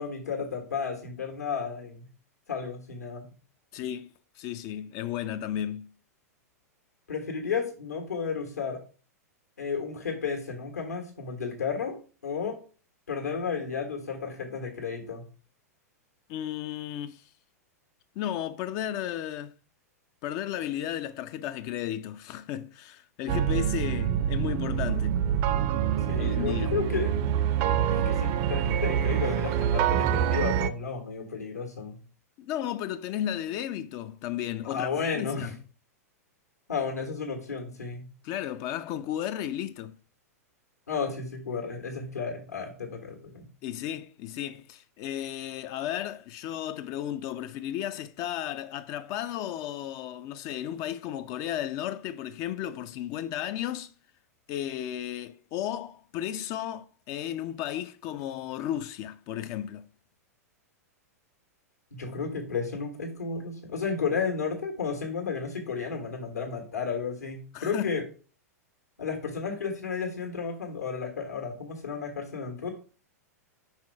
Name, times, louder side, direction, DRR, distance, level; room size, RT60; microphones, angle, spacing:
voice 1, 0.0-2.1 2.5-3.3 7.1-8.8 9.6-12.6 13.1-15.2 26.1-27.1 27.9-32.0 34.6-35.5 36.7-38.1 40.9-43.5 61.9-68.0 69.0-72.7, left 5 dB, 75° left, 1.4 m, -33 dB
voice 2, 3.7-4.1 4.3-5.9 16.3-17.3 18.2-19.5 20.2-25.2 26.2-26.7 32.4-35.6 38.2-40.0 43.6-53.9 54.5-59.9 67.5-68.0, left 11 dB, 40° left, 0.4 m, -34 dB
sound 1, 23.3-30.7, right 9 dB, 40° right, 0.5 m, -26 dB
5.6 x 4.3 x 4.5 m
figure-of-eight pair, 100°, 9 cm